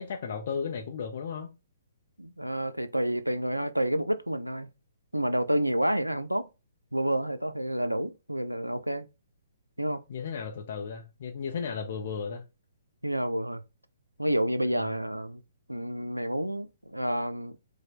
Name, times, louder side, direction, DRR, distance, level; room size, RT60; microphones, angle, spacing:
voice 1, 0.0-1.5 10.1-12.4 14.6-14.8, left 6 dB, 45° left, 0.5 m, -35 dB
voice 2, 2.2-4.7 5.1-6.5 6.9-9.1 9.8-10.0 13.0-13.6 14.2-15.4 15.7-17.6, right 1 dB, 90° right, 0.3 m, -29 dB
4.9 x 2.1 x 3.5 m
figure-of-eight pair, 125°, 0 cm